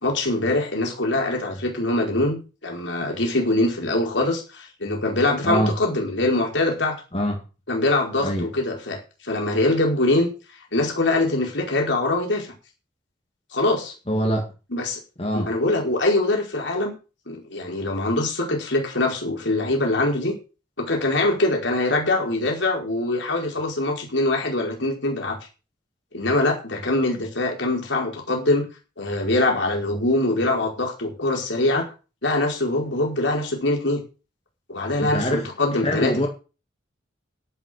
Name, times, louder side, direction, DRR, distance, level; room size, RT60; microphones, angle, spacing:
voice 1, 0.0-7.0 7.7-10.3 10.7-12.5 13.5-13.9 14.7-15.0 15.3-16.9 17.3-20.4 20.8-25.4 26.1-28.7 29.0-31.9 32.2-34.0 34.7-36.3, left 2 dB, 75° left, 5.0 m, -23 dB
voice 2, 5.4-5.8 7.1-7.4 8.2-8.5 14.1-14.5 15.2-15.5 35.0-35.5 35.8-36.3, equal, 35° left, 2.4 m, -24 dB
11.0 x 9.9 x 6.6 m
head